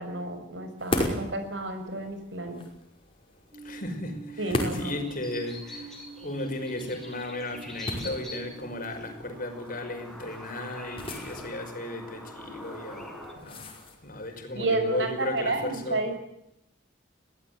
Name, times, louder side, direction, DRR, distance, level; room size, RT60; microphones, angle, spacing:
voice 1, 0.0-2.7 4.4-5.0 14.5-16.2, right 2 dB, 70° right, 7 dB, 6.0 m, -31 dB
sound 1, 0.8-14.3, left 1 dB, 30° left, 5.5 m, -38 dB
sound 2, 3.5-9.9, right 5 dB, 35° right, 4.3 m, -46 dB
voice 2, 3.6-5.9 6.2-13.7 14.0-16.0, left 1 dB, 45° left, 5 dB, 5.5 m, -35 dB
sound 3, 5.1-13.3, left 1 dB, ahead, 6.4 m, -44 dB
22.5 x 17.5 x 9.6 m, 0.80 s
head